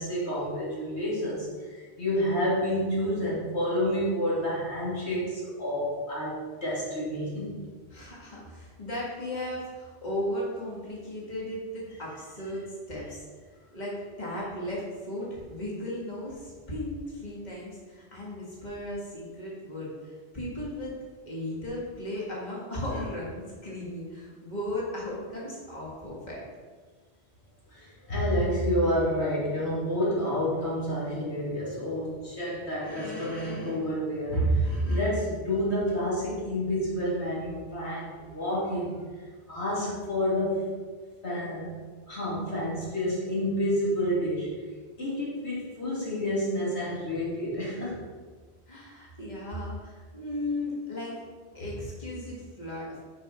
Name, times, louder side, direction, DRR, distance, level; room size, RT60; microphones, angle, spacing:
voice 1, 0.0-7.6 27.7-40.8 41.2-41.7 42.1-44.6 45.0-48.1, equal, 85° left, -7 dB, 3.0 m, -29 dB
voice 2, 7.9-13.3 13.7-20.9 21.3-26.4 48.7-51.2 51.5-53.0, left 1 dB, 40° left, -5 dB, 2.0 m, -36 dB
6.5 x 5.8 x 6.1 m, 1.5 s
omnidirectional pair, 1.1 m